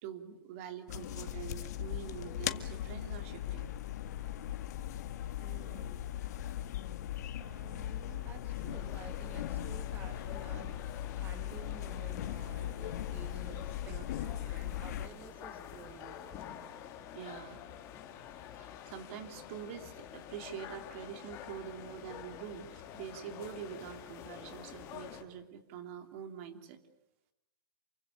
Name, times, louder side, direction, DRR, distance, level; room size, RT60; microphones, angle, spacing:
voice 1, 0.0-3.7 13.9-14.0 17.1-17.6 18.5-26.8, right 8 dB, 35° right, 7 dB, 3.1 m, -45 dB
sound 1, 0.9-15.1, left 12 dB, 50° left, 1.9 m, -39 dB
voice 2, 5.4-6.0 7.3-16.3, right 7 dB, 15° right, 9 dB, 2.2 m, -53 dB
sound 2, 8.7-25.2, left 10 dB, 25° left, 2.7 m, -48 dB
28.5 x 24.5 x 8.6 m, 0.89 s
hypercardioid pair, 165°, 12 cm